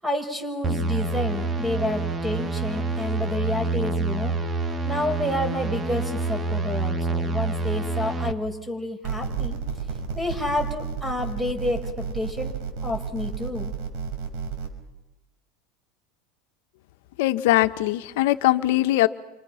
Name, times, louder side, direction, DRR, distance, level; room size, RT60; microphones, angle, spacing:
voice 1, 0.0-4.4 4.8-9.6 10.1-12.5 12.8-13.7, left 1 dB, 5° right, 6 dB, 5.7 m, -29 dB
sound 1, 0.6-8.3, right 3 dB, 20° right, 1.8 m, -27 dB
sound 2, 9.0-14.7, right 6 dB, 65° right, 5.6 m, -31 dB
voice 2, 17.2-19.1, left 16 dB, 75° left, 9 dB, 1.4 m, -21 dB
29.5 x 27.5 x 5.9 m, 1.0 s
supercardioid pair, 125°, 0 cm